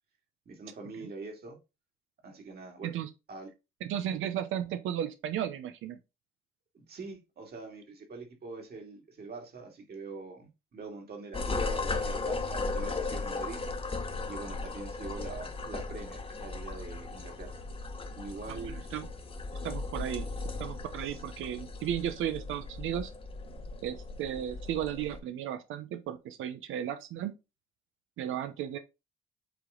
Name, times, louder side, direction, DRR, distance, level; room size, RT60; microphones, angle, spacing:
voice 1, 0.5-1.6 2.2-3.0 3.3-3.5 6.7-13.6 14.3-17.6 18.2-18.8 21.0-21.2, right 4 dB, 50° right, 2.4 m, -44 dB
voice 2, 3.8-6.0 18.5-19.1 19.6-20.3 20.6-23.1 23.8-27.3 28.2-28.8, right 10 dB, 85° right, 0.8 m, -34 dB
sound 1, 11.3-25.2, left 3 dB, 30° left, 1.1 m, -37 dB
8.1 x 3.2 x 3.8 m
cardioid pair, 90°, 20 cm